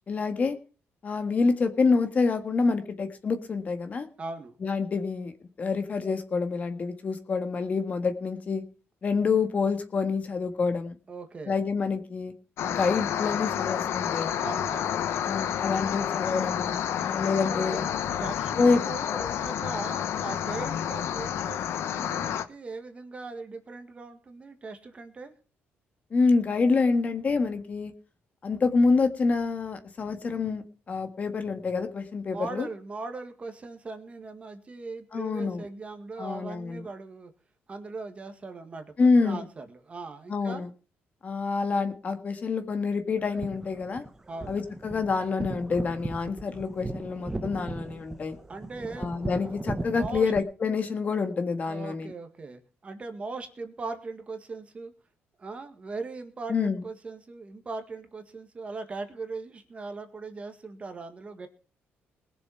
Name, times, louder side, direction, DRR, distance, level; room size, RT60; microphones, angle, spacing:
voice 1, 0.1-0.6 1.0-4.1 4.6-5.3 5.6-8.6 9.0-11.0 11.5-12.3 12.6-14.3 15.2-17.8 18.6-18.8 26.1-27.9 28.4-32.7 35.1-35.7 36.2-36.8 39.0-39.5 40.3-40.7 41.2-44.0 44.5-48.4 49.0-52.1 56.5-56.8, left 4 dB, 35° left, 8 dB, 1.7 m, -27 dB
voice 2, 4.2-4.6 11.1-11.6 14.4-15.0 17.4-17.9 18.2-25.3 32.3-37.3 37.7-40.6 44.3-44.6 48.5-49.5 49.9-50.3 51.7-54.9 55.4-61.5, right 3 dB, 25° right, 7 dB, 1.9 m, -39 dB
sound 1, 12.6-22.4, left 9 dB, 70° left, 1.1 m, -30 dB
sound 2, 43.2-50.4, right 2 dB, 10° right, 0.9 m, -37 dB
20.5 x 7.1 x 5.8 m, 0.37 s
cardioid pair, 140°, 5 cm